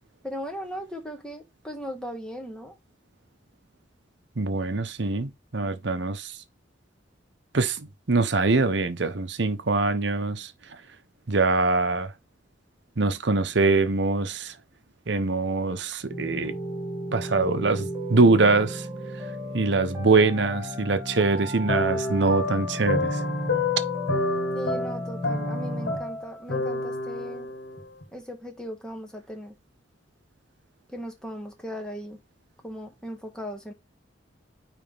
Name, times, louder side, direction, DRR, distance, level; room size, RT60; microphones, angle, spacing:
voice 1, 0.2-2.7 24.5-27.5 28.1-29.5 30.9-32.2 32.6-33.7, equal, 5° left, 1.6 m, -37 dB
voice 2, 4.4-6.4 7.5-10.5 11.3-12.1 13.0-14.5 15.1-16.5 17.1-18.9 19.5-23.2, right 3 dB, 65° right, 0.9 m, -23 dB
sound 1, 16.1-26.0, equal, 15° right, 2.0 m, -35 dB
sound 2, 21.7-28.0, left 2 dB, 70° left, 1.8 m, -29 dB
9.0 x 3.4 x 3.5 m
head